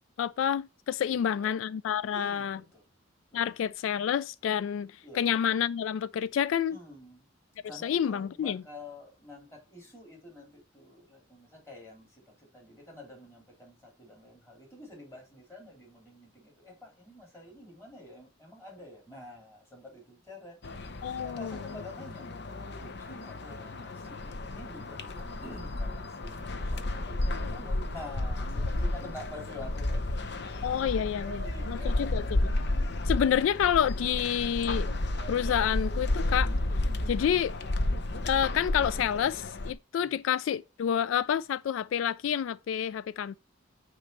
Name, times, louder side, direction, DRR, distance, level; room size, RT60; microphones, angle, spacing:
voice 1, 0.2-2.6 3.3-6.8 7.8-8.6 21.0-21.6 30.6-32.2 33.1-34.9 35.3-36.5 37.1-37.5 38.2-43.4, left 9 dB, 85° left, 0.3 m, -28 dB
voice 2, 1.0-1.5 2.1-2.9 3.3-3.6 5.0-5.2 6.7-7.3 7.6-22.3 22.8-30.0 31.2-32.1 40.0-40.2, left 1 dB, 15° left, 2.9 m, -48 dB
sound 1, 20.6-39.7, left 1 dB, 60° left, 0.7 m, -32 dB
8.8 x 3.2 x 6.6 m
head